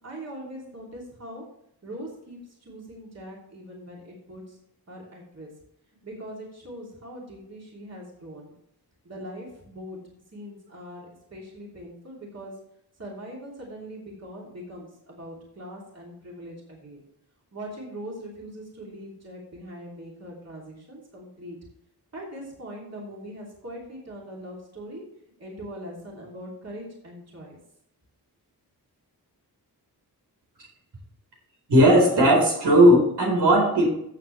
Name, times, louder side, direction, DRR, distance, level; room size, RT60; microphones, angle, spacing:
voice 1, 0.0-1.4 1.8-4.6 4.9-5.5 6.0-8.5 9.0-10.0 10.3-12.6 13.0-17.0 17.5-21.6 22.1-25.1 25.4-27.6, equal, 40° right, -3 dB, 3.1 m, -41 dB
voice 2, 31.7-33.9, right 1 dB, 90° right, -1 dB, 4.3 m, -17 dB
14.5 x 7.4 x 3.3 m, 0.75 s
wide cardioid pair, 135°, 39 cm